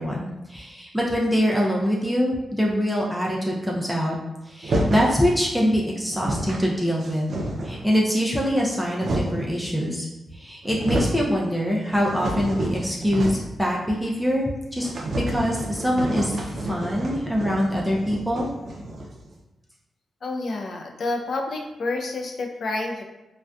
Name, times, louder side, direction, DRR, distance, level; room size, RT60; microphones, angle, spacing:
voice 1, 0.0-4.2 4.4-7.3 7.6-10.1 10.3-14.9 15.3-18.5, equal, ahead, -3 dB, 0.4 m, -24 dB
sound 1, 4.6-5.2 5.8-5.9 6.1-6.6 7.0-7.9 8.6-9.5 10.3-10.4 10.6-11.2 11.6-13.6 13.9-14.0 14.3-14.4 14.8-19.3, right 1 dB, 60° right, 0.4 m, -29 dB
voice 2, 20.2-23.0, left 2 dB, 60° left, 2 dB, 0.4 m, -29 dB
2.5 x 2.2 x 2.3 m, 0.98 s
cardioid pair, 80°, 0 cm